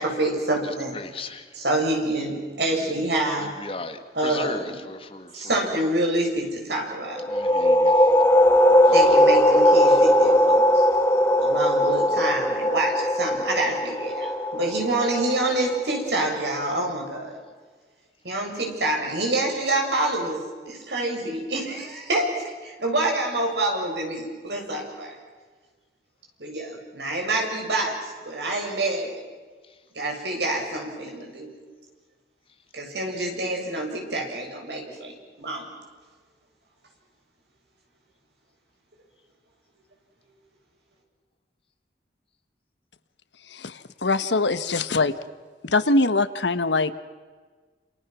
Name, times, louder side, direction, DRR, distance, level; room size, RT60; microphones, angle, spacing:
voice 1, 0.0-1.0 1.5-3.5 4.1-4.8 5.3-7.2 8.9-10.9 11.4-17.3 18.2-20.4 20.7-22.3 22.6-25.2 26.4-28.0 28.2-29.2 29.9-31.5 32.7-35.7, right 2 dB, 75° right, 1 dB, 7.7 m, -27 dB
voice 2, 0.9-1.5 2.8-2.9 3.4-5.6 7.3-7.9 9.9-10.0, left 3 dB, 30° left, 7 dB, 1.9 m, -36 dB
sound 1, 7.2-16.6, equal, 15° left, 1.2 m, -19 dB
voice 3, 43.5-45.1 45.7-47.0, left 3 dB, 90° left, 12 dB, 1.4 m, -23 dB
29.0 x 28.5 x 6.3 m, 1.4 s
head